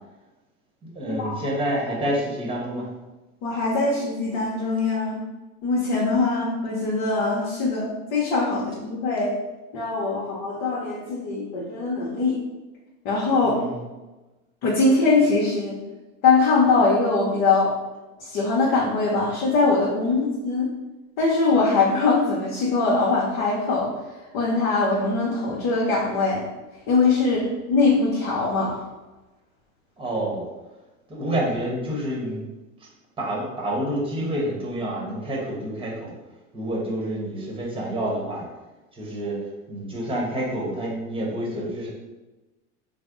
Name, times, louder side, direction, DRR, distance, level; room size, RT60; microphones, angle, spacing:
voice 1, 0.8-2.9 13.4-13.8 30.0-30.4 31.1-32.4 32.8-32.9 33.2-36.1 36.5-38.5 38.9-39.4 39.7-41.9, right 1 dB, 15° right, -3 dB, 1.0 m, -28 dB
voice 2, 3.4-5.2 5.6-9.4 9.7-12.4 13.0-13.6 14.6-15.8 16.2-17.7 18.2-20.7 21.2-23.9 24.3-26.4 26.9-28.8, left 3 dB, 55° left, -4 dB, 0.9 m, -22 dB
3.3 x 2.0 x 3.7 m, 1.1 s
hypercardioid pair, 105°, 40 cm